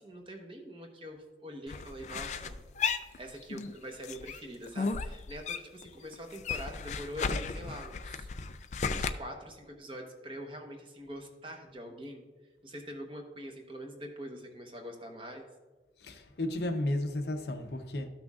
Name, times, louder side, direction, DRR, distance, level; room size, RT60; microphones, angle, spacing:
voice 1, 0.0-2.6 3.2-8.3 8.9-12.2 12.6-15.5, equal, 30° right, 1.0 m, -44 dB
sound 1, 1.7-3.7 4.0-5.9 6.1-9.1, left 5 dB, 40° left, 0.3 m, -35 dB
voice 2, 16.0-18.1, left 1 dB, 70° left, 0.7 m, -33 dB
13.5 x 6.1 x 2.4 m
head